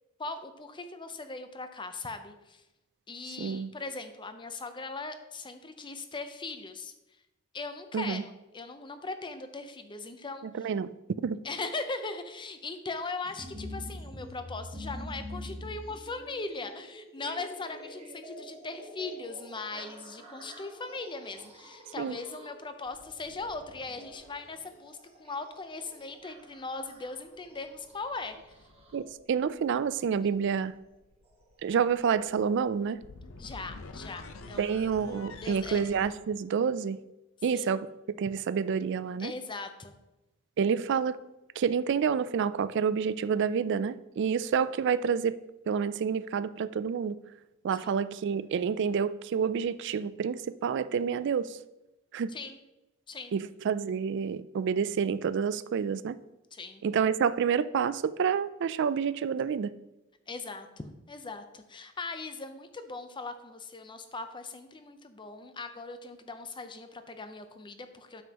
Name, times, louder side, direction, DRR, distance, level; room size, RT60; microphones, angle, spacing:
voice 1, 0.2-2.6 3.1-6.9 7.5-10.7 11.4-28.4 33.4-34.7 35.4-35.8 37.5-37.7 39.2-39.9 47.8-48.0 52.3-52.6 53.1-53.4 56.5-56.8 60.3-68.2, left 3 dB, 25° left, 0.6 m, -39 dB
voice 2, 3.4-3.7 7.9-8.2 10.6-10.9 11.2-11.4 22.0-22.2 28.9-30.7 31.6-33.0 34.6-37.0 37.4-37.9 38.2-39.3 40.6-41.2 41.6-45.4 45.7-47.2 47.6-51.6 52.1-52.4 53.3-56.2 56.8-59.7, right 6 dB, 55° right, 0.3 m, -28 dB
sound 1, 13.2-29.2 30.4-30.5 31.3-31.4 32.0-32.1, equal, 30° right, 1.2 m, -46 dB
sound 2, 21.4-21.6 22.9-25.0 26.8-36.1, left 3 dB, 65° left, 0.7 m, -50 dB
9.1 x 7.3 x 2.9 m
head